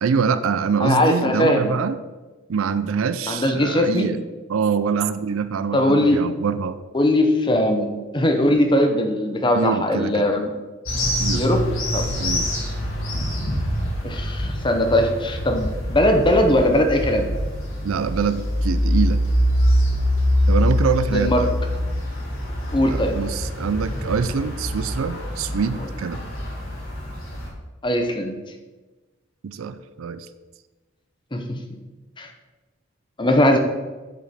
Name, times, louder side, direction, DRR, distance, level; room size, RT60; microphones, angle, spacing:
voice 1, 0.0-2.0 2.5-4.2 4.5-6.8 9.5-10.2 11.2-11.5 12.2-12.5 17.8-19.2 20.5-21.5 22.8-26.2 29.4-30.3, right 6 dB, 80° right, 13 dB, 0.4 m, -24 dB
voice 2, 0.8-1.7 3.3-4.1 5.7-6.2 6.9-10.5 11.3-11.6 11.9-12.1 14.0-17.3 21.1-21.4 22.7-23.2 27.8-28.4 31.3-31.8 32.2-32.3 33.2-33.6, left 1 dB, 25° left, 5 dB, 0.7 m, -20 dB
sound 1, 10.9-27.5, left 1 dB, 75° left, 1.9 m, -24 dB
7.7 x 5.1 x 4.2 m, 1.2 s
head